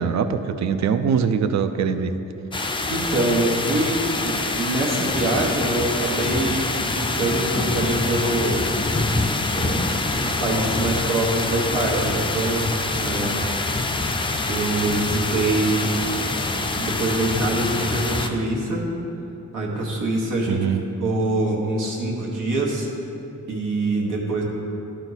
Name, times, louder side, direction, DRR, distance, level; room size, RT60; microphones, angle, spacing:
voice 1, 0.0-2.1 20.5-20.8, right 6 dB, 60° right, 10 dB, 0.5 m, -22 dB
sound 1, 2.5-18.3, left 2 dB, 15° left, 0.4 m, -25 dB
voice 2, 2.9-8.6 9.5-9.8 10.1-13.4 13.6-14.0 14.5-15.9 16.8-18.8 19.5-20.6 21.0-22.9 23.5-24.4, right 2 dB, 85° right, -3 dB, 1.4 m, -24 dB
11.5 x 4.4 x 4.0 m, 2.9 s
wide cardioid pair, 130°, 31 cm